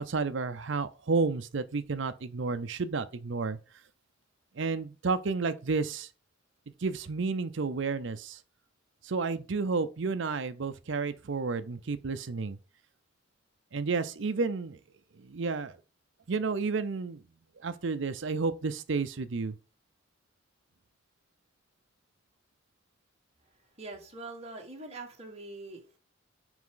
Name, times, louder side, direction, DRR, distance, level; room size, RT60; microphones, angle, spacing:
voice 1, 0.0-3.6 4.6-6.1 6.8-8.4 9.0-12.6 13.7-14.8 15.2-15.7 16.3-17.2 17.6-19.5, right 4 dB, 65° right, 0.6 m, -31 dB
voice 2, 23.8-26.0, right 2 dB, 35° right, 1.7 m, -43 dB
6.0 x 4.8 x 3.8 m
head